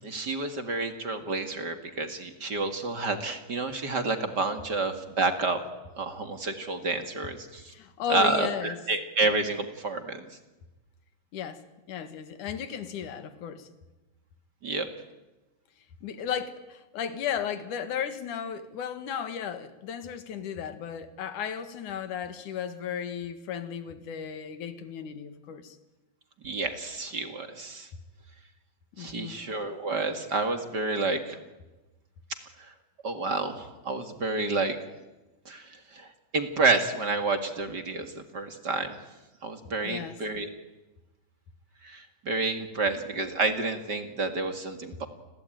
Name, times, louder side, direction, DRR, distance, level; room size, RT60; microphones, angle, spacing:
voice 1, 0.0-5.6 6.0-7.6 8.1-10.2 14.6-14.9 26.4-27.9 29.0-31.4 33.0-34.8 35.5-35.6 35.9-36.1 36.3-38.9 39.4-40.5 41.8-45.1, right 3 dB, 40° right, 7 dB, 2.3 m, -29 dB
voice 2, 7.7-8.8 11.3-11.6 11.9-13.7 16.0-25.8 28.9-29.4 39.8-40.2, left 8 dB, 90° left, 11 dB, 3.2 m, -35 dB
29.5 x 22.0 x 9.1 m, 1.1 s
omnidirectional pair, 3.4 m